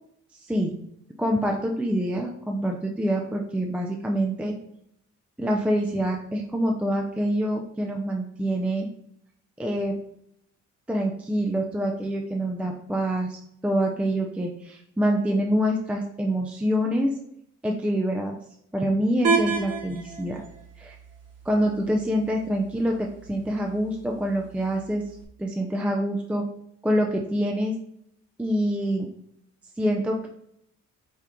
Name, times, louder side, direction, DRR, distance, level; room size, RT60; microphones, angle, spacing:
voice 1, 0.5-0.8 1.2-4.5 5.4-8.9 9.6-10.0 10.9-17.1 17.6-18.3 18.7-20.4 20.8-21.0 21.5-25.0 25.4-26.4 26.8-27.7 28.4-29.1 29.8-30.3, equal, 5° right, 1 dB, 0.4 m, -26 dB
sound 1, 19.2-25.2, right 5 dB, 55° right, 0.9 m, -32 dB
4.4 x 2.4 x 3.5 m, 0.72 s
cardioid pair, 90°, 30 cm